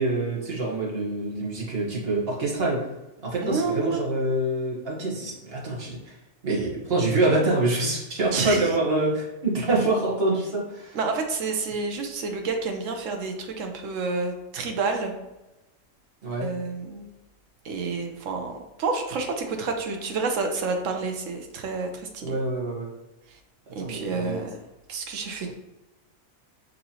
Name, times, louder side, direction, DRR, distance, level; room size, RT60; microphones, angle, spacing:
voice 1, 0.0-2.9 3.2-6.2 6.4-11.0 16.2-16.5 22.2-22.9 23.8-24.4 25.3-25.5, right 2 dB, 45° right, -3 dB, 1.3 m, -26 dB
voice 2, 3.4-4.0 8.3-8.7 10.9-15.1 16.4-17.1 17.6-22.4 23.3-23.4 23.7-24.6 24.9-25.5, right 4 dB, 70° right, 4 dB, 1.0 m, -29 dB
5.4 x 2.9 x 2.8 m, 1.0 s
omnidirectional pair, 1.4 m